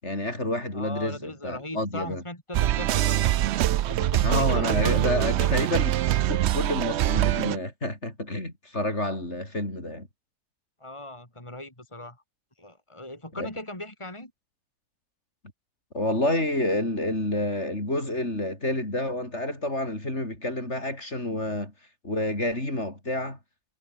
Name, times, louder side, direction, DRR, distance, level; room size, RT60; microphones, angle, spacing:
voice 1, 0.0-2.2 4.2-10.1 13.3-13.5 15.9-21.7 22.0-23.4, left 1 dB, 45° left, 7.2 m, -29 dB
voice 2, 0.7-3.3 3.9-5.6 10.8-12.2 12.6-14.3, left 1 dB, 15° left, 4.4 m, -38 dB
sound 1, 2.5-7.6, right 13 dB, 75° right, 0.6 m, -24 dB
omnidirectional pair, 1.7 m